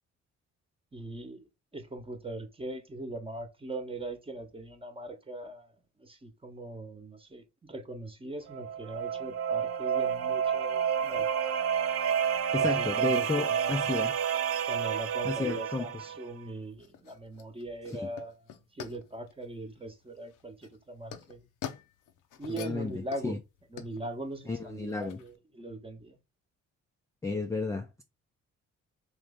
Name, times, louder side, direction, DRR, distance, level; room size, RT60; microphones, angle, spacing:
voice 1, 0.9-1.5 1.7-5.7 6.0-11.3 12.6-13.9 14.7-18.4 18.7-21.5 22.4-23.4 23.7-26.2, right 2 dB, 20° right, 0.9 m, -40 dB
sound 1, 8.5-16.3, right 8 dB, 50° right, 0.5 m, -29 dB
voice 2, 12.5-14.1 15.2-15.9 17.9-18.1 22.6-23.4 24.5-25.2 27.2-28.0, left 3 dB, 10° left, 0.4 m, -32 dB
sound 2, 16.1-25.3, left 9 dB, 85° left, 0.7 m, -47 dB
3.2 x 3.0 x 3.6 m
cardioid pair, 90°, 30 cm